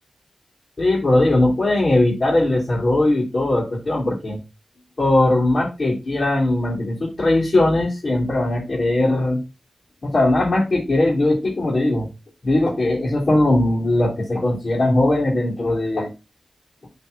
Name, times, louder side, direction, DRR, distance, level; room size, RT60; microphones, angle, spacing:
voice 1, 0.8-4.4 5.0-9.4 10.0-12.1 12.4-16.1, left 1 dB, 45° left, -5 dB, 3.0 m, -19 dB
7.1 x 4.6 x 4.0 m, 0.25 s
wide cardioid pair, 105°, 0 cm